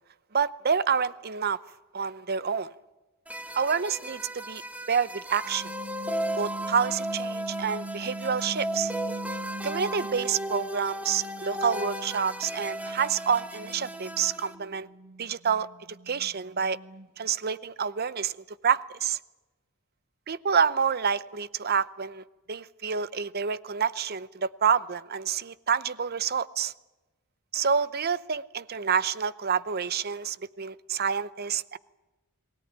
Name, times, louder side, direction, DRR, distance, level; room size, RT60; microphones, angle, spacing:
voice 1, 0.3-1.6 1.9-2.7 3.5-4.6 4.9-5.7 6.4-8.9 9.6-14.9 15.2-15.7 16.1-16.8 17.2-18.3 18.6-19.2 20.3-26.7 27.5-31.8, right 6 dB, 45° right, 17 dB, 0.7 m, -28 dB
sound 1, 3.3-14.6, right 1 dB, 5° right, 1.5 m, -35 dB
sound 2, 5.4-10.7 11.1-17.3, right 1 dB, 80° right, 1.2 m, -42 dB
23.0 x 17.5 x 9.9 m, 1.1 s
head